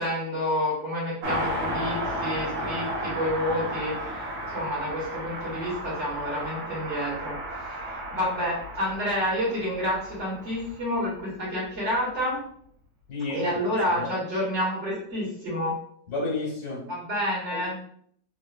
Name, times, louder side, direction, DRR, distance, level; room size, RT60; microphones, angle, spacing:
voice 1, 0.0-12.4 13.3-15.7 16.9-17.7, equal, 40° right, -5 dB, 1.5 m, -29 dB
Car passing by, 1.2-11.2 11.4-11.5, equal, 75° right, 1.5 m, -33 dB
voice 2, 13.1-13.4 14.0-14.1 16.1-16.9 17.5-17.8, left 3 dB, 55° left, -2 dB, 1.6 m, -31 dB
3.6 x 3.0 x 2.3 m, 0.64 s
omnidirectional pair, 2.0 m